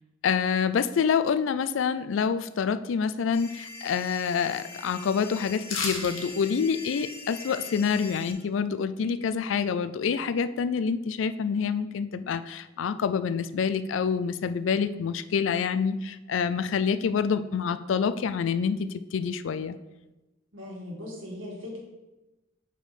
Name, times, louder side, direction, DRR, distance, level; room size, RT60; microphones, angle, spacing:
voice 1, 0.2-19.8, left 6 dB, 70° left, 12 dB, 0.4 m, -27 dB
sound 1, 3.3-8.3, left 3 dB, 50° left, 0.9 m, -43 dB
sound 2, 5.7-6.3 6.6-6.7, left 4 dB, 85° left, 1.2 m, -31 dB
voice 2, 20.5-21.8, left 1 dB, 80° right, -2 dB, 1.8 m, -39 dB
5.4 x 4.9 x 4.1 m, 1.0 s
head